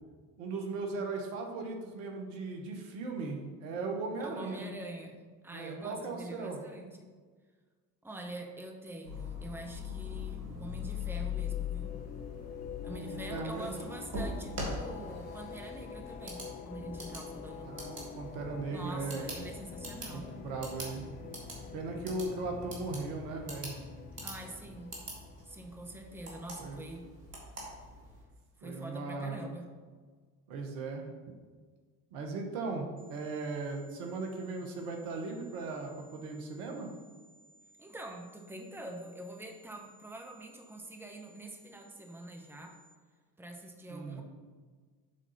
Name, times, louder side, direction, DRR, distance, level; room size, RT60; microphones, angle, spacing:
voice 1, 0.4-4.6 5.5-6.6 12.9-13.8 17.6-19.3 20.1-21.3 21.7-23.7 26.6-26.8 28.6-29.4 30.5-31.0 32.1-36.9 43.9-44.2, right 3 dB, 70° right, 2 dB, 1.4 m, -38 dB
voice 2, 4.2-5.2 5.4-7.1 8.0-11.9 12.8-17.8 18.7-20.3 24.2-24.9 25.4-27.1 28.6-29.7 37.8-42.8 43.4-44.2, right 1 dB, 5° right, 2 dB, 1.2 m, -45 dB
sound 1, 9.0-28.2, left 4 dB, 90° right, 1.8 m, -43 dB
sound 2, 10.6-25.9, left 7 dB, 20° left, 0.3 m, -46 dB
sound 3, 33.0-43.0, right 2 dB, 40° right, 1.6 m, -62 dB
7.3 x 3.9 x 5.6 m, 1.5 s
hypercardioid pair, 60°, 47 cm